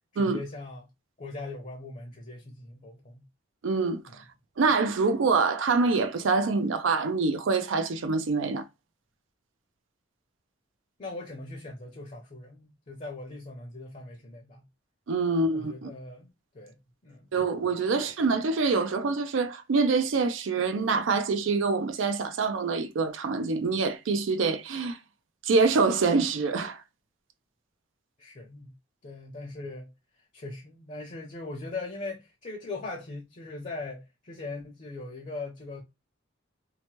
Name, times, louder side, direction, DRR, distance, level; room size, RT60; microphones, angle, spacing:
voice 1, 0.1-0.9 1.2-3.2 4.1-4.2 11.0-14.6 15.3-16.8 17.0-17.4 17.9-18.1 28.2-28.7 29.0-29.9 30.3-35.8, left 2 dB, 40° left, 0.7 m, -40 dB
voice 2, 3.6-4.2 4.6-8.6 15.1-15.9 17.3-25.0 25.4-26.8, right 4 dB, 75° right, 0.4 m, -25 dB
2.9 x 2.1 x 2.9 m
head